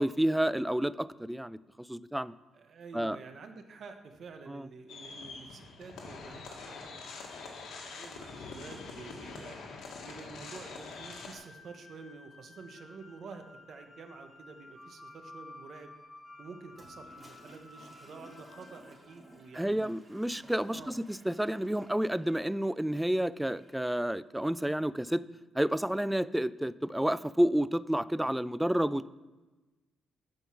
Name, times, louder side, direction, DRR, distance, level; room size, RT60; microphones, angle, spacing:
voice 1, 0.0-2.3 2.9-3.2 4.5-4.7 19.5-25.2 25.5-29.1, right 1 dB, 5° right, 17 dB, 0.4 m, -30 dB
voice 2, 2.5-7.3 7.8-9.6 10.0-15.9 16.4-19.9 20.6-21.0, right 4 dB, 55° right, 6 dB, 1.2 m, -49 dB
sound 1, 4.9-11.3, left 4 dB, 75° left, 1.9 m, -44 dB
sound 2, 10.7-19.9, left 2 dB, 15° left, 1.8 m, -54 dB
Toilet flush, 16.7-23.9, right 1 dB, 20° right, 2.4 m, -56 dB
14.5 x 5.4 x 6.2 m, 1.2 s
cardioid pair, 90°, 0 cm